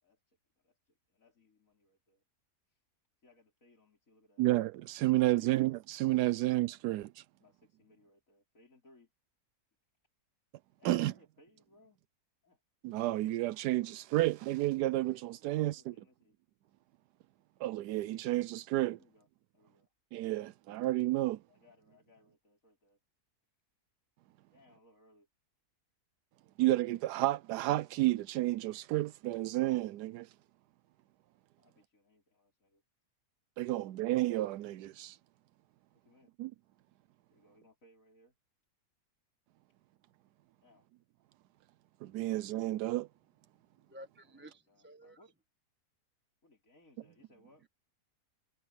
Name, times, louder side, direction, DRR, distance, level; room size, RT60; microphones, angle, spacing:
voice 1, 0.0-2.2 2.7-2.8 3.2-4.5 5.1-5.5 6.3-6.4 7.4-9.1 10.8-12.0 12.4-12.6 15.5-16.4 18.9-19.3 19.5-19.9 21.5-23.0 24.5-25.3 31.6-32.8 33.7-34.0 35.9-36.3 37.3-38.4 40.6-40.9 44.2-45.4 46.4-47.7, left 2 dB, 55° left, 5.7 m, -65 dB
voice 2, 4.4-7.2 10.8-11.1 12.8-15.9 17.6-19.0 20.1-21.4 26.6-30.3 33.6-35.2 36.4-36.5 42.0-43.1, right 16 dB, 85° right, 1.2 m, -31 dB
voice 3, 43.9-45.2, equal, 10° right, 1.1 m, -52 dB
omnidirectional pair, 1.7 m